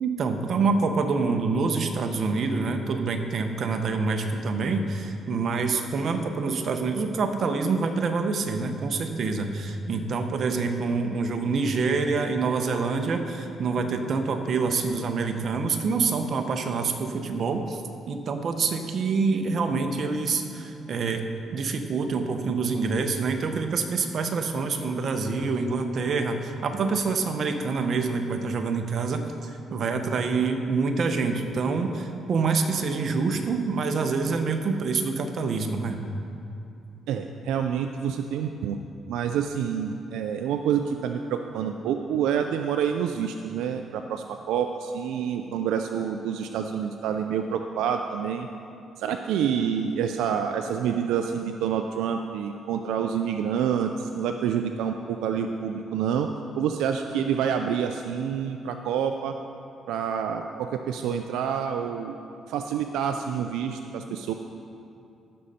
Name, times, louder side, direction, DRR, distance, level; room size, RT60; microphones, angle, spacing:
voice 1, 0.0-17.8 18.1-21.3 21.5-36.0, right 4 dB, 55° right, 6 dB, 0.9 m, -26 dB
voice 2, 37.1-38.8 39.1-48.5 49.0-56.3 56.6-59.4 59.9-62.2 62.5-64.3, right 8 dB, 90° right, 6 dB, 0.4 m, -27 dB
14.5 x 6.5 x 4.3 m, 2.6 s
cardioid pair, 90°, 0 cm